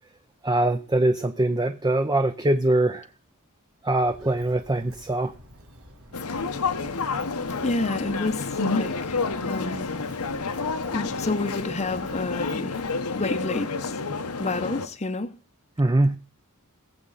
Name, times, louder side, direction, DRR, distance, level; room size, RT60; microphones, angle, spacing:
voice 1, 0.4-3.1 3.8-5.3 15.8-16.2, right 1 dB, 20° right, 0.6 m, -22 dB
Walk footsteps, 4.0-12.9, equal, 75° right, 3.6 m, -50 dB
sound 1, 6.1-14.9, left 4 dB, 85° left, 1.1 m, -29 dB
voice 2, 7.6-9.2 9.5-9.9 10.9-12.8 13.2-14.0 14.4-15.3, left 2 dB, 30° left, 0.8 m, -29 dB
21.0 x 7.7 x 4.0 m
head